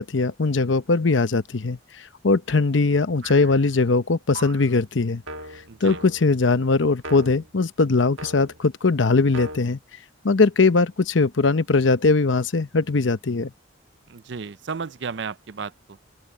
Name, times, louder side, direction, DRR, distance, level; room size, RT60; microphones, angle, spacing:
voice 1, 0.0-5.2 5.8-9.8 10.2-13.5, left 3 dB, 80° left, 0.9 m, -20 dB
sound 1, 3.2-3.7 4.3-4.7 5.3-6.4 7.0-7.5 8.2-8.7 9.3-9.6, right 1 dB, 85° right, 1.6 m, -38 dB
voice 2, 5.7-6.0 14.1-16.0, right 5 dB, 65° right, 0.5 m, -33 dB
open air
head